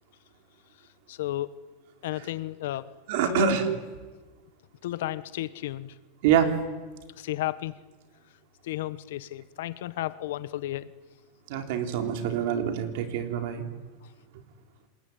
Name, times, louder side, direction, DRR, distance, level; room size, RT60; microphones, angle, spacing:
voice 1, 1.1-1.5 2.0-2.8 3.3-3.5 4.8-5.9 7.2-7.7 8.6-10.9, left 15 dB, 70° left, 16 dB, 1.2 m, -32 dB
voice 2, 3.1-3.8 6.2-6.5 11.5-13.6, right 8 dB, 55° right, 6 dB, 3.7 m, -25 dB
27.5 x 20.5 x 9.3 m, 1.3 s
supercardioid pair, 165°, 0 cm